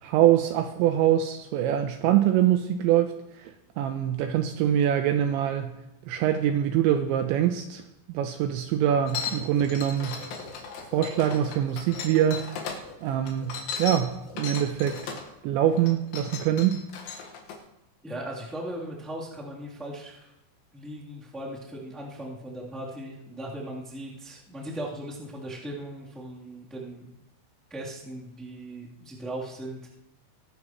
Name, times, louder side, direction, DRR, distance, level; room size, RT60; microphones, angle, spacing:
voice 1, 0.0-5.8 6.1-7.8 8.1-10.2 10.9-12.5 13.0-15.1 15.4-16.8, right 10 dB, 85° right, 7 dB, 2.7 m, -24 dB
sound 1, 9.0-15.5, left 4 dB, 45° left, 3.0 m, -49 dB
sound 2, 9.1-12.8 13.3-15.3 15.8-17.6, left 6 dB, 70° left, 3.8 m, -36 dB
voice 2, 18.0-20.3 20.7-27.1 27.7-29.8, right 1 dB, ahead, -6 dB, 1.8 m, -38 dB
22.5 x 11.5 x 3.1 m, 0.89 s
omnidirectional pair, 5.7 m